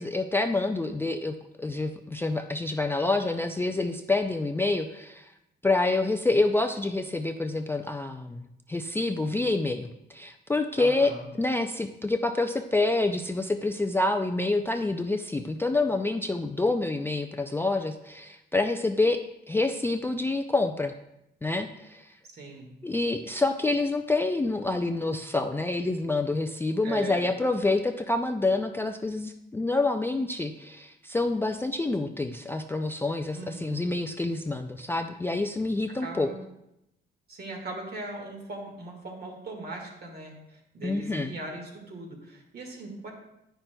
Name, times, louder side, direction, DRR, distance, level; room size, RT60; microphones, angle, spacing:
voice 1, 0.0-5.3 5.6-11.1 11.4-19.2 19.5-20.9 21.4-22.1 22.8-36.3 40.8-41.3, left 2 dB, 10° left, 4 dB, 0.3 m, -27 dB
voice 2, 10.8-11.3 22.3-22.7 26.8-27.3 33.3-33.9 36.0-36.5 37.3-43.1, right 2 dB, 55° right, 1 dB, 1.7 m, -39 dB
9.0 x 5.7 x 2.2 m, 0.85 s
cardioid pair, 90°, 20 cm